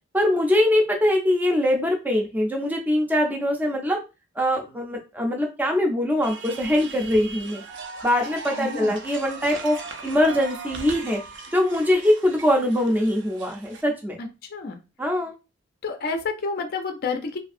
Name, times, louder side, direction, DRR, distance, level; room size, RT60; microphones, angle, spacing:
voice 1, 0.1-4.0 4.4-7.6 8.0-9.8 10.0-11.2 11.5-14.2 15.0-15.3, left 1 dB, 10° right, 1 dB, 0.5 m, -22 dB
sound 1, 6.2-13.8, right 4 dB, 65° right, 0.5 m, -39 dB
voice 2, 8.6-9.0 14.2-14.8 15.8-17.4, left 4 dB, 50° left, 5 dB, 0.4 m, -29 dB
2.7 x 2.4 x 2.5 m, 0.28 s
head